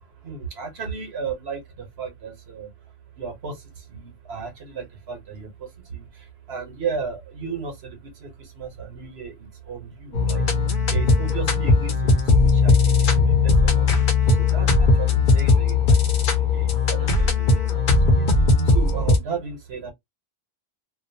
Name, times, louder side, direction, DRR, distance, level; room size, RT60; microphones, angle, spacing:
voice 1, 0.0-2.7 3.1-19.9, right 5 dB, 80° right, 1.3 m, -34 dB
sound 1, 10.1-19.2, left 3 dB, 60° left, 0.8 m, -18 dB
2.7 x 2.2 x 2.6 m
omnidirectional pair, 1.1 m